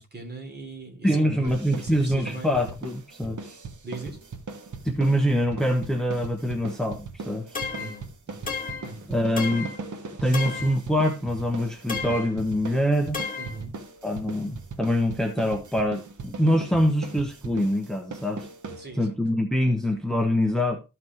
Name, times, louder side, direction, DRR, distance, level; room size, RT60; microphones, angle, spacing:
voice 1, 0.0-2.5 3.8-4.2 7.7-9.1 13.4-13.7 18.8-19.1, right 3 dB, 30° right, 2 dB, 3.3 m, -40 dB
voice 2, 1.0-3.4 4.8-7.6 9.1-9.7 10.2-13.2 14.0-18.5 19.0-20.8, equal, ahead, 2 dB, 1.1 m, -24 dB
sound 1, 1.5-19.2, right 4 dB, 70° right, 1.5 m, -39 dB
sound 2, 7.6-8.0 8.5-8.9 9.4-9.8 10.3-10.8 11.9-12.3 13.1-13.6, left 5 dB, 25° left, 1.9 m, -32 dB
13.5 x 6.1 x 3.0 m, 0.27 s
wide cardioid pair, 155°, 31 cm